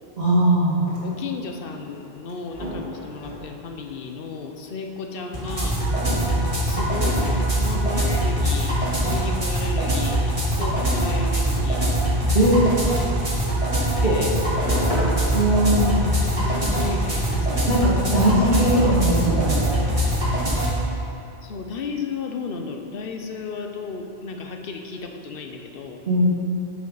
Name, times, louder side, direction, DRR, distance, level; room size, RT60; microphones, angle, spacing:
voice 1, 0.2-0.8 6.2-6.4 12.3-12.6 14.0-14.2 15.3-16.1 17.6-19.8 26.0-26.2, right 1 dB, 90° right, -11 dB, 2.3 m, -20 dB
sound 1, 0.7-17.2, equal, 80° left, 2.5 m, -39 dB
voice 2, 1.0-5.8 6.7-10.3 10.6-12.0 14.0-14.3 16.3-17.7 21.4-26.0, left 4 dB, 65° left, 4 dB, 1.0 m, -33 dB
sound 2, 5.3-20.7, right 1 dB, 35° right, 2.1 m, -23 dB
9.3 x 8.1 x 4.0 m, 2.6 s
omnidirectional pair, 1.0 m